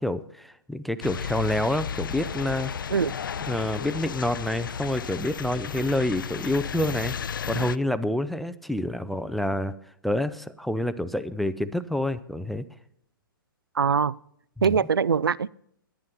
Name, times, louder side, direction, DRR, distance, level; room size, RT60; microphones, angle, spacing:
voice 1, 0.0-2.9 3.5-7.1 7.4-9.7 10.0-12.6 14.6-14.8, left 1 dB, ahead, 13 dB, 0.3 m, -28 dB
sound 1, 1.0-7.8, left 7 dB, 70° left, 0.4 m, -33 dB
voice 2, 13.8-14.1 14.6-15.5, right 6 dB, 75° right, 21 dB, 0.4 m, -22 dB
10.5 x 10.0 x 5.7 m, 0.70 s
figure-of-eight pair, 120°, 12 cm